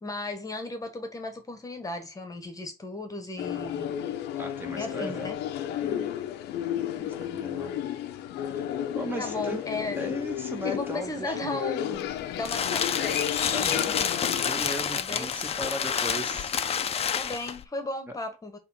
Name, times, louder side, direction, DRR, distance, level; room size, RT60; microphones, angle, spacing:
voice 1, 0.0-4.0 4.7-5.4 9.2-10.2 10.6-13.2 13.6-14.1 14.9-15.4 17.2-18.6, left 2 dB, 20° left, 1.3 m, -36 dB
sound 1, 3.4-14.5, left 10 dB, 80° left, 0.8 m, -32 dB
voice 2, 4.4-5.3 5.8-6.1 7.0-7.7 8.4-8.6 8.9-9.6 10.0-11.4 13.5-14.0 14.4-16.6, equal, 10° right, 1.5 m, -37 dB
sound 2, 12.0-17.6, left 7 dB, 35° left, 0.6 m, -29 dB
6.8 x 3.3 x 4.3 m
cardioid pair, 110°, 17 cm